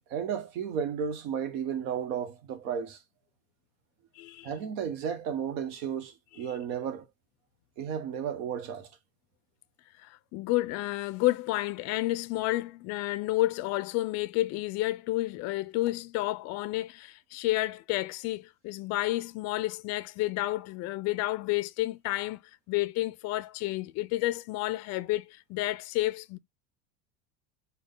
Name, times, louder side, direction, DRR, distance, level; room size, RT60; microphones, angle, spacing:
voice 1, 0.1-3.0 4.4-7.1 7.8-8.9, right 7 dB, 75° right, 1.0 m, -33 dB
voice 2, 4.2-4.5 6.4-6.5 10.0-22.4 22.7-26.4, left 17 dB, 45° left, 0.4 m, -30 dB
3.8 x 2.3 x 3.5 m
supercardioid pair, 120°, 38 cm